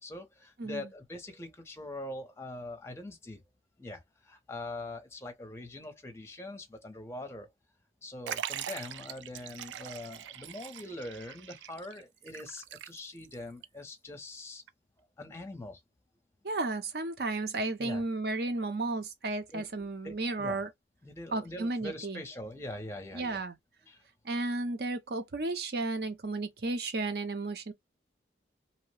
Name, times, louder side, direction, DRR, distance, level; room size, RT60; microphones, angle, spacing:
voice 1, 0.0-3.4 3.8-7.5 8.0-14.6 15.0-15.8 17.8-18.0 19.5-20.6 21.0-23.4 23.8-24.0, left 1 dB, 15° left, 0.6 m, -43 dB
Liquid, 8.3-13.3 13.6-13.7 14.7-14.8, right 10 dB, 85° right, 0.4 m, -42 dB
voice 2, 16.4-20.7 21.3-22.2 23.1-23.5 24.2-27.7, right 2 dB, 60° right, 0.7 m, -33 dB
2.8 x 2.1 x 3.1 m
head